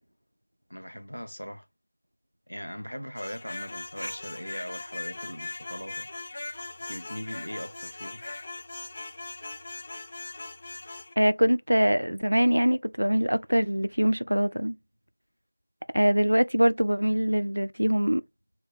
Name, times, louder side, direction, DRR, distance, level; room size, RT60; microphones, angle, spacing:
voice 1, 0.7-1.7 2.5-6.1 6.9-8.2, equal, 90° left, 0.5 m, -39 dB
sound 1, 3.2-11.1, left 2 dB, 35° left, 0.4 m, -40 dB
voice 2, 11.2-14.8 15.9-18.2, equal, 85° right, 0.4 m, -23 dB
3.9 x 2.2 x 3.0 m
figure-of-eight pair, 170°, 0 cm